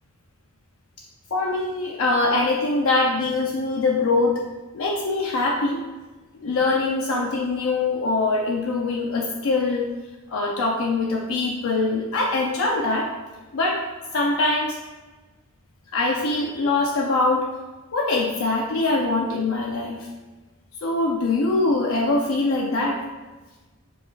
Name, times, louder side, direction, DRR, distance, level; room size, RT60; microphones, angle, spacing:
voice 1, 1.3-4.4 4.7-5.8 6.4-9.9 10.3-13.1 13.5-13.8 14.1-14.8 15.9-17.5 17.9-20.0 20.8-23.0, left 3 dB, 65° left, -1 dB, 0.5 m, -23 dB
7.0 x 2.3 x 3.1 m, 1.2 s
head